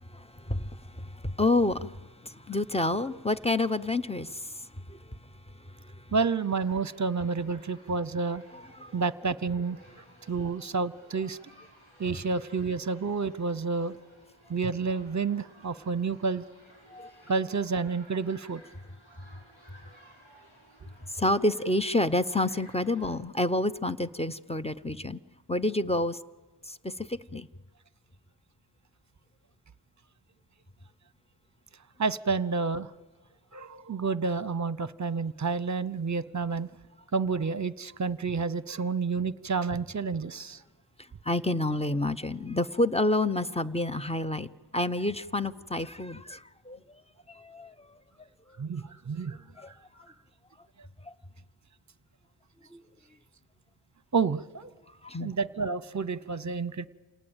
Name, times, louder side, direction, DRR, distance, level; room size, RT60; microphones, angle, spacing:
voice 1, 0.0-5.2 5.6-6.1 8.5-9.0 16.9-17.1 21.1-25.2 25.5-26.2 26.6-27.5 41.2-47.0 47.3-48.3 49.6-49.7 51.0-51.1 52.7-52.8 55.0-55.3, left 2 dB, 15° left, 12 dB, 0.7 m, -29 dB
sound 1, 6.1-23.2, right 1 dB, 70° left, 6.7 m, -57 dB
voice 2, 6.1-8.4 8.9-9.8 10.3-11.4 12.0-14.0 14.5-16.4 17.3-18.6 32.0-32.9 33.5-36.7 37.1-40.6 48.6-49.4 54.1-54.7 55.2-56.9, right 4 dB, 35° right, 18 dB, 0.8 m, -29 dB
28.0 x 18.5 x 9.0 m, 1.3 s
wide cardioid pair, 60°, 48 cm